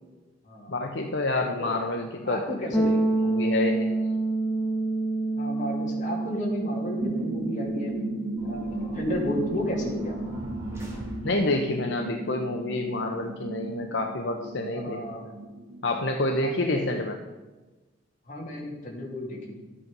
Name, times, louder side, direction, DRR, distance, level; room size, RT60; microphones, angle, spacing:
voice 1, 0.7-2.4 3.2-4.1 11.2-15.2 15.8-17.2, left 2 dB, 65° left, 3 dB, 0.8 m, -28 dB
voice 2, 2.2-3.0 5.4-7.9 8.4-10.2 14.7-15.3 16.4-16.9 18.3-19.6, left 1 dB, 45° left, -2 dB, 2.7 m, -32 dB
sound 1, 2.7-12.4, right 2 dB, 10° left, 1.7 m, -29 dB
sound 2, 7.0-17.4, right 1 dB, 70° right, 1.3 m, -37 dB
sound 3, 8.4-11.7, equal, 15° right, 2.7 m, -43 dB
12.5 x 8.5 x 5.4 m, 1.2 s
head